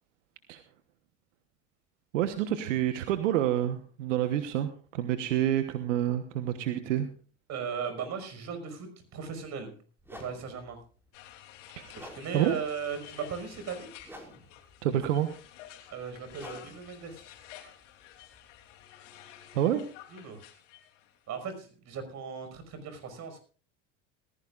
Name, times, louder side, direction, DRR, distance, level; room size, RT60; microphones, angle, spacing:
voice 1, 2.1-7.1 11.8-11.9 12.3-12.5 14.8-15.3 19.5-19.8, right 11 dB, 85° right, 9 dB, 1.2 m, -28 dB
voice 2, 7.5-9.7 10.1-10.8 12.0-13.9 15.9-17.2 20.1-20.4 21.3-23.4, right 6 dB, 50° right, 8 dB, 5.5 m, -37 dB
sound 1, 10.0-18.8, equal, 5° right, 5.6 m, -52 dB
sound 2, 11.1-21.2, left 11 dB, 80° left, 3.1 m, -51 dB
19.5 x 15.5 x 2.5 m, 0.39 s
supercardioid pair, 90°, 36 cm